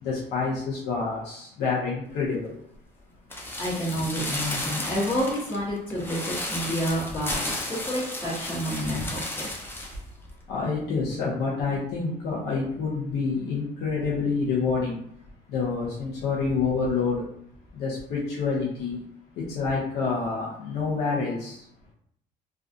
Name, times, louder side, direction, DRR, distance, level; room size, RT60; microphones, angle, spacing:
voice 1, 0.0-2.5 8.9-9.1 10.5-15.0 15.5-17.2 17.7-19.0 19.5-21.6, left 4 dB, 80° left, -5 dB, 0.7 m, -27 dB
sound 1, 3.3-10.0 10.3-10.4, left 1 dB, 15° left, 0.5 m, -33 dB
voice 2, 3.6-9.5, equal, 30° left, -8 dB, 0.9 m, -29 dB
2.4 x 2.2 x 2.6 m, 0.69 s
cardioid pair, 110°, 17 cm